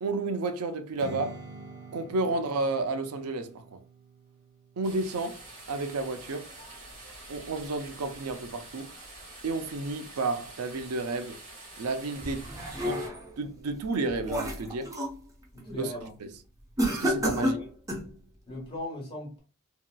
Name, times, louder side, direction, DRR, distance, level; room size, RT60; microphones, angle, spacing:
voice 1, 0.0-1.4 1.9-3.8 4.8-5.4 5.7-6.5 7.3-8.9 9.4-11.4 11.8-12.5 12.8-13.0 13.4-14.9 15.8-16.3 16.9-17.6, right 3 dB, 90° right, 0.5 m, -31 dB
Strum, 1.0-6.2, right 2 dB, 55° right, 0.8 m, -47 dB
sound 1, 4.8-13.1, right 2 dB, 35° right, 1.3 m, -47 dB
sound 2, 12.2-13.3 13.8-15.2 15.6-15.9 16.8-18.1, equal, 15° right, 0.6 m, -30 dB
voice 2, 15.5-16.1 17.3-17.7 18.5-19.4, left 1 dB, 25° left, 1.2 m, -39 dB
2.9 x 2.7 x 2.2 m
head